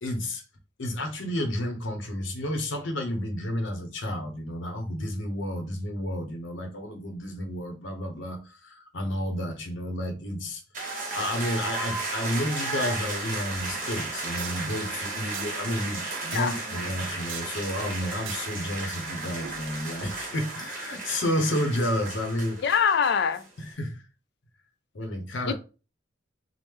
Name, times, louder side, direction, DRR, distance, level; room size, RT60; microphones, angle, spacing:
voice 1, 0.0-0.4 0.8-22.6 23.6-24.0 24.9-25.5, left 1 dB, 75° left, 0.7 m, -31 dB
sound 1, 10.7-23.4, right 3 dB, 45° right, 1.0 m, -34 dB
sound 2, 12.9-20.5, right 9 dB, 70° right, 0.4 m, -45 dB
voice 2, 22.6-23.4 25.5-25.6, left 7 dB, 60° left, 0.4 m, -23 dB
3.1 x 2.0 x 3.4 m
head